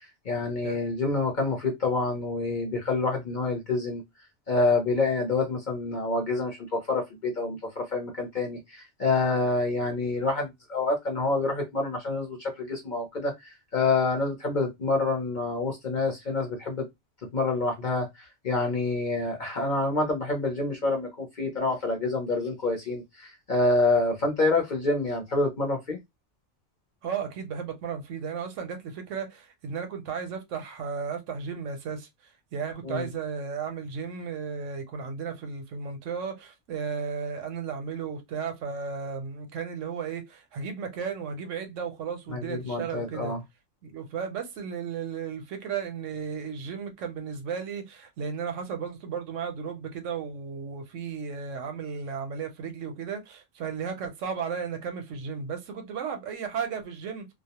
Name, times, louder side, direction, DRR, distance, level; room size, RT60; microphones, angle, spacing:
voice 1, 0.3-4.0 4.5-16.8 17.3-26.0 32.8-33.1 42.3-43.4, left 3 dB, 50° left, 0.6 m, -27 dB
voice 2, 27.0-32.1 32.5-43.3 43.8-57.3, right 6 dB, 75° right, 1.0 m, -34 dB
2.3 x 2.0 x 2.8 m
omnidirectional pair, 1.3 m